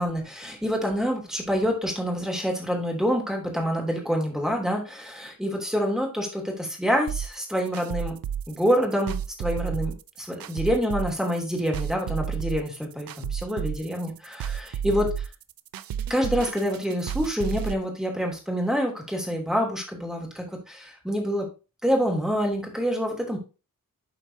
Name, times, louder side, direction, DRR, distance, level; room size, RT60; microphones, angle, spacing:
voice 1, 0.0-8.2 8.5-15.3 16.1-21.5 21.8-23.4, equal, ahead, 1 dB, 2.8 m, -27 dB
sound 1, 7.1-17.7, right 9 dB, 80° right, 0.5 m, -32 dB
12.0 x 4.4 x 2.8 m, 0.30 s
wide cardioid pair, 90°, 34 cm